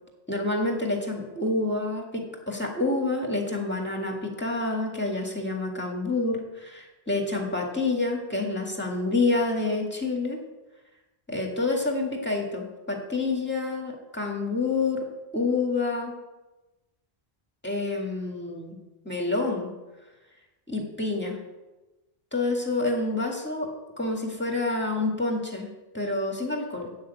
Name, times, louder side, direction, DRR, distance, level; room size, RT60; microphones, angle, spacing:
voice 1, 0.3-10.4 11.3-15.0 15.3-16.1 17.6-18.8 19.1-19.7 20.7-21.4 22.3-25.7 25.9-26.9, left 3 dB, 10° left, 1 dB, 1.8 m, -28 dB
9.0 x 6.5 x 8.1 m, 1.1 s
omnidirectional pair, 1.1 m